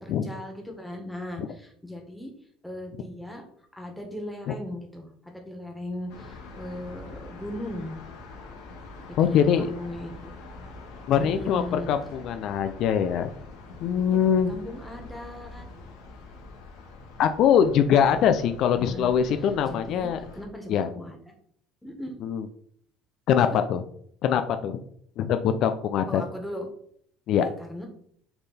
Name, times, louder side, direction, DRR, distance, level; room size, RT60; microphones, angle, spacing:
voice 1, 0.0-2.3 2.6-3.4 3.7-8.0 9.1-10.3 11.2-11.9 14.0-14.2 14.5-15.7 18.7-20.1 20.3-21.3 21.8-22.2 23.5-23.6 26.1-26.7 27.4-27.9, left 1 dB, 5° left, 1 dB, 1.7 m, -38 dB
sound 1, 6.1-20.4, left 3 dB, 85° left, 1.8 m, -44 dB
voice 2, 9.2-9.7 11.1-13.3 13.8-14.5 17.2-20.2 20.7-20.9 22.2-22.4 23.3-23.8 24.2-24.8 25.2-26.2 27.3-27.5, left 8 dB, 65° left, 8 dB, 0.5 m, -23 dB
6.7 x 3.8 x 4.2 m, 0.65 s
supercardioid pair, 100°, 0 cm